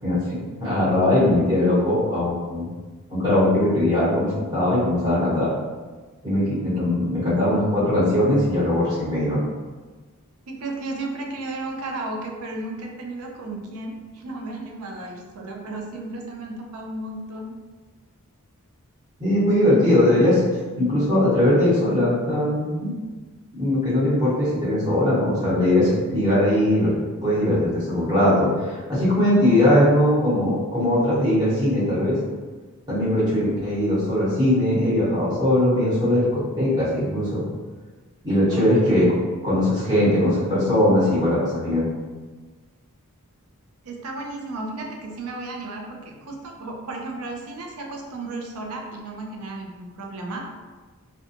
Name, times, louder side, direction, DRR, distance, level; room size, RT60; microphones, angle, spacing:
voice 1, 0.6-2.7 3.1-5.5 6.2-9.4 19.2-20.4 20.8-22.9 23.5-26.9 27.2-32.2 32.9-37.4 38.2-39.1 39.4-41.8, left 1 dB, 20° right, -11 dB, 1.1 m, -20 dB
voice 2, 10.5-17.5 38.5-39.0 43.8-50.4, right 2 dB, 75° right, 1 dB, 0.5 m, -34 dB
2.5 x 2.2 x 2.7 m, 1.3 s
head